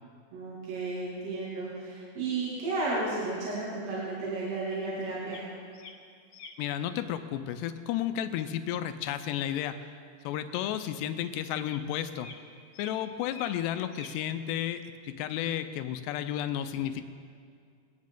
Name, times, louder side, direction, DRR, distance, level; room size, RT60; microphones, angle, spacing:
voice 1, 0.3-5.5, right 3 dB, 75° right, -7 dB, 4.4 m, -33 dB
sound 1, 5.3-5.4 5.7-5.9 6.3-6.5 10.5-10.6 11.1-11.2 11.7-11.8 12.2-12.4 12.7-12.9 13.2-13.7 13.9-14.1, left 5 dB, 65° left, 2.5 m, -46 dB
voice 2, 6.6-9.9 10.2-12.3 12.8-17.0, left 11 dB, 90° left, 10 dB, 2.8 m, -32 dB
23.5 x 9.5 x 3.7 m, 2.2 s
omnidirectional pair, 4.8 m